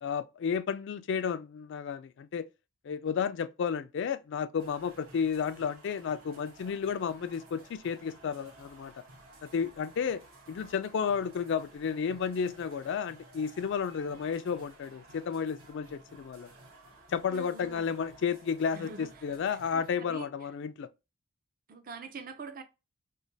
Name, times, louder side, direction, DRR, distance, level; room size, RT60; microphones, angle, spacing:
voice 1, 0.0-2.5 2.8-8.9 9.4-10.2 10.5-16.5 17.1-20.9, left 6 dB, 55° left, 0.3 m, -32 dB
sound 1, 4.6-19.9, right 2 dB, 75° right, 1.1 m, -55 dB
voice 2, 17.3-17.9 18.7-19.2 19.5-20.5 21.7-22.6, right 4 dB, 40° right, 0.5 m, -45 dB
3.2 x 2.2 x 3.9 m
head